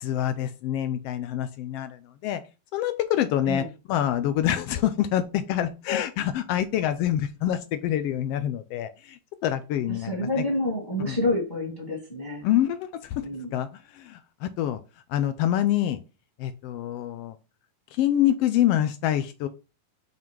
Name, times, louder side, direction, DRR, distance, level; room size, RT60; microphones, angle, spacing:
voice 1, 0.0-2.4 2.7-10.4 11.1-11.2 12.4-13.2 13.5-14.8 15.1-16.0 16.4-17.4 17.9-19.5, left 11 dB, 85° left, 11 dB, 1.3 m, -26 dB
voice 2, 10.0-12.4 13.2-13.5, left 1 dB, 10° left, -1 dB, 1.5 m, -28 dB
5.7 x 4.9 x 4.6 m, 0.31 s
omnidirectional pair, 3.4 m